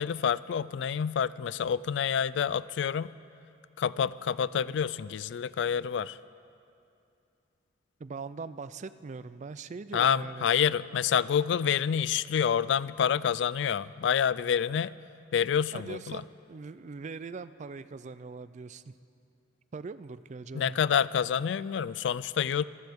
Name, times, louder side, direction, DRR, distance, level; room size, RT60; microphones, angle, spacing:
voice 1, 0.0-3.1 3.8-6.2 9.9-14.9 15.3-16.2 20.5-22.6, left 8 dB, 70° left, 19 dB, 0.3 m, -28 dB
voice 2, 8.0-10.5 15.7-18.9 19.7-20.7, right 4 dB, 40° right, 15 dB, 0.4 m, -41 dB
25.5 x 15.5 x 3.6 m, 2.6 s
head